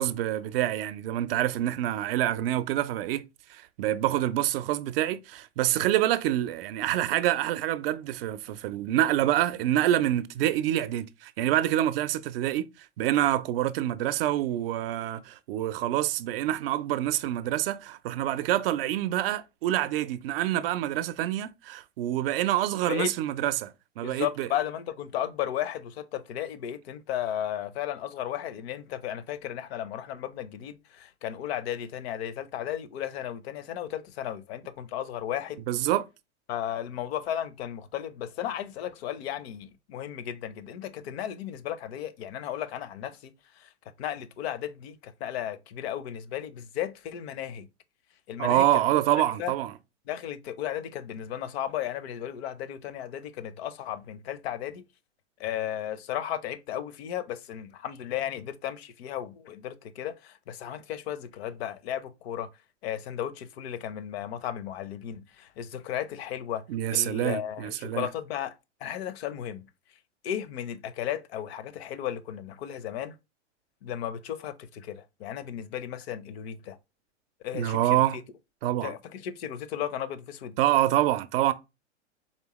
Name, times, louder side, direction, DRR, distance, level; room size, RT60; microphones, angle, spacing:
voice 1, 0.0-3.2 3.5-12.7 13.0-24.5 35.7-36.1 48.4-49.7 66.7-68.1 77.5-78.2 78.6-78.9 80.6-81.5, right 13 dB, 50° right, 0.5 m, -26 dB
voice 2, 24.0-35.6 36.5-43.7 44.0-47.7 48.3-48.7 49.4-49.5 50.1-54.8 55.4-62.5 62.8-66.6 66.9-68.5 68.8-69.7 70.2-73.1 73.8-76.8 77.4-78.2 78.8-80.6, left 10 dB, 55° left, 0.7 m, -34 dB
4.3 x 3.3 x 3.0 m
hypercardioid pair, 105°, 37 cm